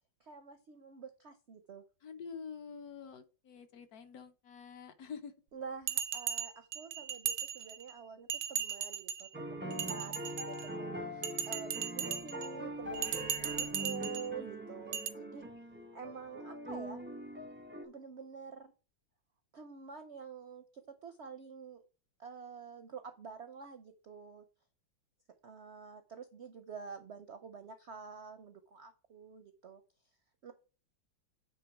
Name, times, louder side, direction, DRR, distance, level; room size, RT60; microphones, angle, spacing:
voice 1, 0.2-1.8 5.5-15.4 15.9-17.0 17.8-18.7 19.5-21.8 22.2-24.4 25.4-29.8 30.4-30.5, right 6 dB, 65° right, 9 dB, 0.6 m, -48 dB
voice 2, 2.0-5.3 10.0-10.2 15.3-15.4, left 6 dB, 65° left, 9 dB, 1.1 m, -47 dB
Bell, 5.9-7.9 8.3-9.3 9.7-10.7 11.2-12.5 12.9-14.3 14.9-15.1, right 9 dB, 85° right, 1.4 m, -37 dB
sound 1, 9.3-17.8, right 1 dB, 15° right, 0.4 m, -42 dB
Livestock farm animals working animals, 12.8-13.7, left 4 dB, 80° left, 2.9 m, -50 dB
9.1 x 3.7 x 4.7 m, 0.36 s
omnidirectional pair, 2.0 m